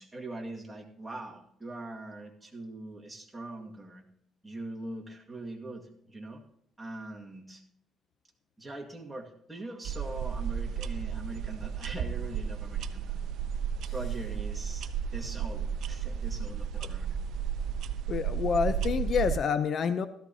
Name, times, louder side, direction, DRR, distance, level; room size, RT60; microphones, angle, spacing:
voice 1, 0.0-4.0 4.4-6.4 6.8-7.6 8.6-13.1 13.9-17.1, right 2 dB, 10° right, -1 dB, 1.9 m, -42 dB
sound 1, 9.8-19.4, right 8 dB, 70° right, 0.6 m, -33 dB
voice 2, 18.1-20.1, left 6 dB, 50° left, 12 dB, 0.6 m, -28 dB
16.0 x 13.5 x 2.8 m, 0.71 s
cardioid pair, 110°, 0 cm